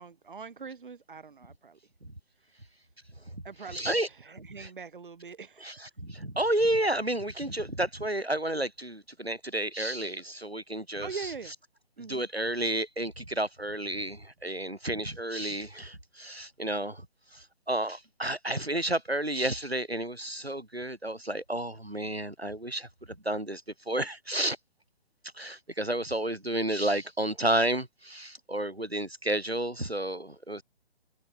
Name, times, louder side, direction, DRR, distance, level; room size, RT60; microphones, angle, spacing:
voice 1, 0.0-1.8 3.4-5.8 11.0-11.5 12.0-12.3, right 5 dB, 60° right, 3.4 m, -43 dB
voice 2, 3.7-4.1 4.4-4.7 5.6-11.3 12.0-17.1 17.3-24.6 25.3-30.6, right 1 dB, 90° right, 7.4 m, -31 dB
figure-of-eight pair, 140°, 30 cm